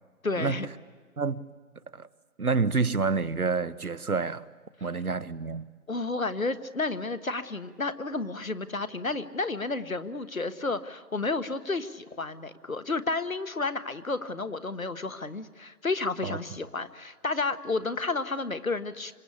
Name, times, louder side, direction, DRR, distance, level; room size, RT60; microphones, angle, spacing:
voice 1, 0.2-0.7 5.9-19.1, left 3 dB, 65° left, 12 dB, 1.4 m, -31 dB
voice 2, 2.4-4.4 4.8-5.7 16.2-16.4, right 4 dB, 75° right, 17 dB, 1.1 m, -28 dB
26.0 x 22.5 x 8.6 m, 1.4 s
figure-of-eight pair, 180°, 44 cm